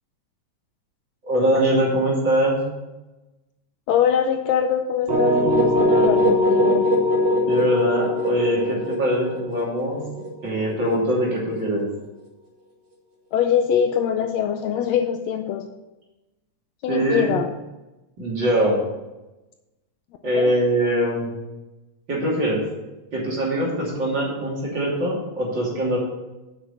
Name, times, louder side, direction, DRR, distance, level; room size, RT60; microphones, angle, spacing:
voice 1, 1.2-2.6 7.5-10.0 10.4-11.9 16.9-17.3 18.2-18.8 20.2-21.3 22.1-22.6 23.1-26.0, right 1 dB, 40° right, -4 dB, 3.3 m, -22 dB
voice 2, 3.9-6.9 13.3-15.7 16.8-17.5 20.2-20.5, left 8 dB, 80° left, 7 dB, 1.7 m, -23 dB
sound 1, 5.1-10.9, left 1 dB, 60° right, 2.9 m, -21 dB
8.2 x 6.3 x 6.9 m, 1.0 s
omnidirectional pair, 3.3 m